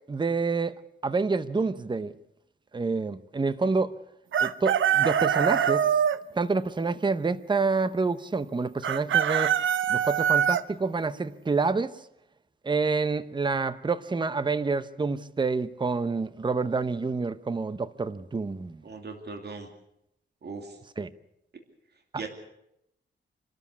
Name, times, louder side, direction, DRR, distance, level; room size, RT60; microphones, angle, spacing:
voice 1, 0.1-2.1 2.7-3.9 4.4-5.9 6.3-9.5 9.9-11.9 12.6-18.8 21.0-21.1, right 4 dB, 25° right, 0.8 m, -28 dB
Chicken rooster, 4.3-6.2 8.8-10.6, right 9 dB, 85° right, 0.7 m, -23 dB
voice 2, 18.8-19.7 20.4-20.8 22.1-22.3, right 4 dB, 60° right, 2.7 m, -38 dB
26.5 x 13.0 x 8.4 m
wide cardioid pair, 120°, 20 cm